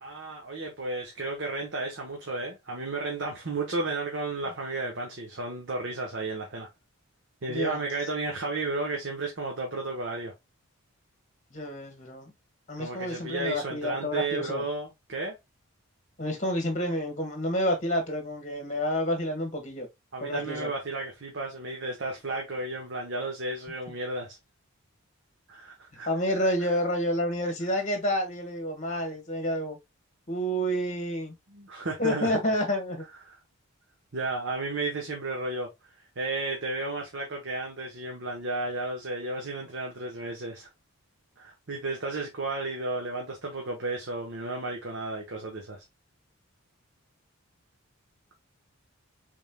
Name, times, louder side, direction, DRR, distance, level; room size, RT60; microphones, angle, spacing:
voice 1, 0.0-6.7 7.4-10.3 12.8-15.4 20.1-24.4 25.5-26.1 26.6-26.7 31.5-32.3 33.3-33.4 34.1-35.7 36.2-40.7 41.4-45.8, right 2 dB, 55° right, 1.0 m, -33 dB
voice 2, 7.5-7.9 11.5-12.3 12.7-14.6 16.2-19.9 20.2-20.7 26.0-29.8 30.3-31.3 32.0-33.0, equal, 30° left, 1.4 m, -29 dB
5.3 x 3.6 x 2.2 m
head